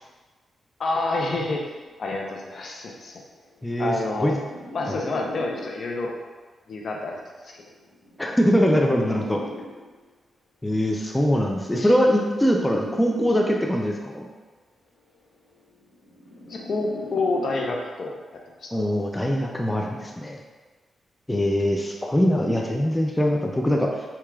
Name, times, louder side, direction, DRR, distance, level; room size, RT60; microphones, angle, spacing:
voice 1, 0.8-1.7 2.0-3.2 3.8-4.4 4.7-6.2 6.7-7.2 7.4-7.6 11.8-11.9 16.5-18.8 22.6-22.7, left 2 dB, 60° left, 0 dB, 0.6 m, -28 dB
sound 1, 1.9-2.1 3.0-6.1 7.1-10.1 11.1-14.1 15.1-18.1 19.1-19.5, left 1 dB, 75° left, 1.4 m, -41 dB
voice 2, 3.6-4.4 8.2-9.4 10.6-14.3 18.7-20.4 21.3-23.9, equal, 10° left, -1 dB, 0.4 m, -22 dB
4.6 x 2.9 x 2.4 m, 1.3 s
cardioid pair, 90°, 0 cm